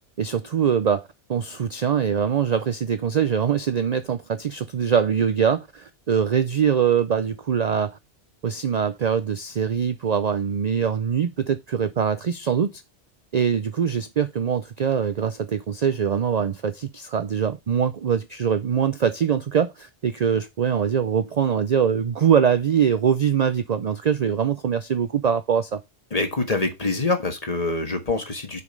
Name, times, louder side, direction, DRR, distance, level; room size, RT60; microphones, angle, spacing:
voice 1, 0.2-8.0 8.4-12.8 13.3-25.8, right 7 dB, 50° right, 0.5 m, -23 dB
voice 2, 26.1-28.6, left 3 dB, 35° left, 1.5 m, -25 dB
6.8 x 5.2 x 5.2 m
omnidirectional pair, 1.2 m